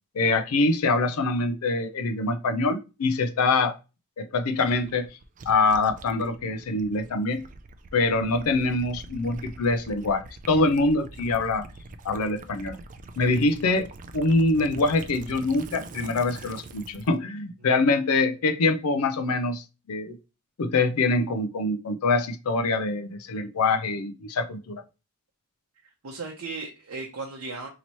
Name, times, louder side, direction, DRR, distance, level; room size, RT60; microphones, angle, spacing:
voice 1, 0.1-3.8 4.2-5.2 5.5-7.4 7.9-11.6 12.0-12.8 13.2-20.2 20.6-24.8, left 3 dB, 80° left, 0.5 m, -24 dB
Gurgling / Liquid, 4.6-17.2, right 2 dB, 35° right, 0.4 m, -44 dB
voice 2, 25.8-27.7, right 3 dB, 75° right, 0.7 m, -36 dB
3.0 x 2.9 x 4.2 m
head